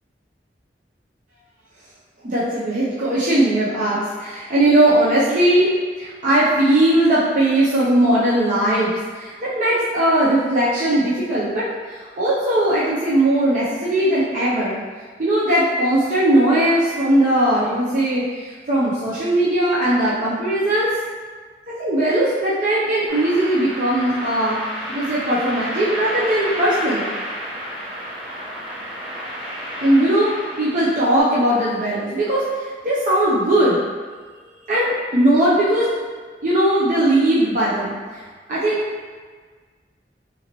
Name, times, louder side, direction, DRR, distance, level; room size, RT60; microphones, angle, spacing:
voice 1, 2.2-5.7 6.0-14.8 15.2-20.9 21.8-24.6 24.9-27.0 29.8-30.3 30.6-33.8 34.7-35.9 36.4-38.0 38.5-38.9, right 1 dB, 50° right, -9 dB, 0.6 m, -19 dB
sound 1, 23.1-31.2, equal, 30° right, 1.0 m, -31 dB
3.8 x 2.8 x 2.9 m, 1.5 s
head